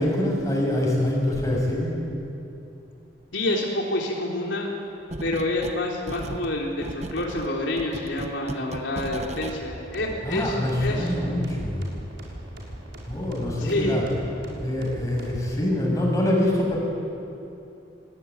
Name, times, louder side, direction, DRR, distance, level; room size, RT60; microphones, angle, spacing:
voice 1, 0.0-1.9 10.2-11.8 13.1-14.0 14.6-16.8, left 1 dB, 20° left, -2 dB, 6.5 m, -25 dB
voice 2, 3.3-4.7 5.2-11.1 13.6-14.0, left 1 dB, 80° left, -1 dB, 3.5 m, -28 dB
sound 1, 5.1-5.8 6.1-9.6, right 1 dB, 35° right, 1.0 m, -36 dB
sound 2, 9.6-15.5, equal, 70° right, 5.7 m, -40 dB
23.5 x 19.0 x 9.6 m, 2.7 s
head